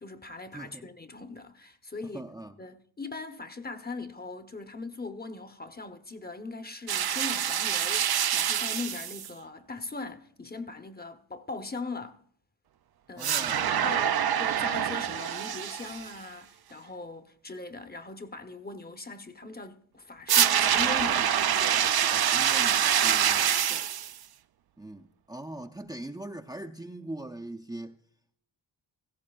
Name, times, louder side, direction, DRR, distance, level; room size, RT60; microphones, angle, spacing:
voice 1, 0.0-2.3 2.6-12.2 13.1-13.3 13.6-22.3 23.7-23.9, left 3 dB, 20° left, 0.9 m, -40 dB
voice 2, 0.5-0.9 2.0-2.6 13.2-13.7 22.1-23.6 24.8-28.0, right 1 dB, 10° right, 0.5 m, -41 dB
sound 1, 6.9-9.3 13.2-16.1 20.3-24.1, right 9 dB, 55° right, 0.5 m, -26 dB
17.0 x 15.0 x 2.3 m
cardioid pair, 55°, 46 cm